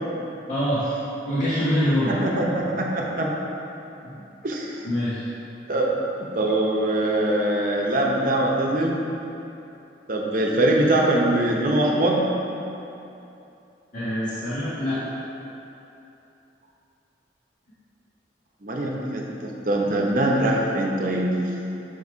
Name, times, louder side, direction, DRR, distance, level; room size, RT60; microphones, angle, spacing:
voice 1, 0.5-0.9 1.2-2.1 4.0-4.1 4.8-5.2 13.9-15.0, equal, 45° left, -13 dB, 1.5 m, -24 dB
voice 2, 2.1-3.3 4.4-4.7 5.7-9.0 10.1-12.2 18.6-21.3, right 1 dB, 50° right, -1 dB, 0.8 m, -23 dB
6.4 x 4.1 x 4.9 m, 2.8 s
head